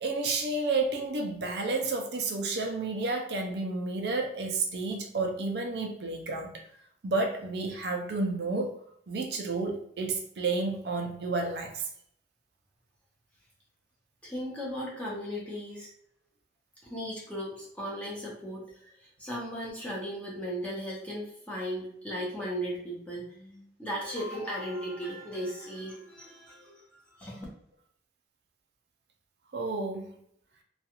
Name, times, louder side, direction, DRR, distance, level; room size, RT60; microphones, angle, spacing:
voice 1, 0.0-6.6 7.0-8.7 9.1-11.8 29.5-30.1, right 3 dB, 65° right, 2 dB, 0.4 m, -31 dB
voice 2, 14.2-15.9 16.8-27.4, equal, 5° left, -6 dB, 0.7 m, -37 dB
2.3 x 2.3 x 2.9 m, 0.68 s
head